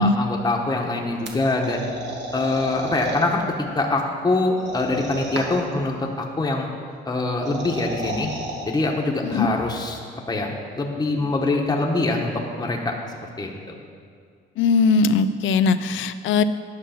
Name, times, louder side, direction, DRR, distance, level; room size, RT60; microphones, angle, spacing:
voice 1, 0.0-1.9 2.3-3.4 3.8-6.7 7.1-8.3 8.6-10.0 10.3-13.5, left 2 dB, 20° left, 0 dB, 1.1 m, -24 dB
sound 1, 1.3-3.3 4.6-5.7 7.2-8.6, right 2 dB, 60° right, 1.6 m, -32 dB
voice 2, 14.6-16.4, left 4 dB, 75° left, 12 dB, 0.5 m, -19 dB
10.5 x 5.9 x 5.8 m, 2.1 s
cardioid pair, 90°, 20 cm